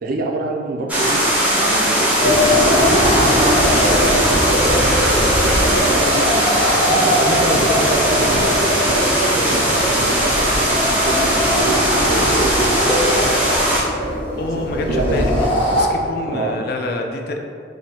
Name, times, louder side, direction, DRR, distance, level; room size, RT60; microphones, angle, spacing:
voice 1, 0.0-12.7 14.4-15.3 16.3-16.7, right 2 dB, 50° right, 2 dB, 0.4 m, -27 dB
sound 1, 0.9-13.8, equal, 10° right, 0.6 m, -19 dB
sound 2, 2.2-15.9, equal, 30° left, 1.1 m, -20 dB
voice 2, 14.4-15.5 15.7-17.4, left 2 dB, 55° left, 3 dB, 0.4 m, -26 dB
4.7 x 2.5 x 2.8 m, 2.2 s
head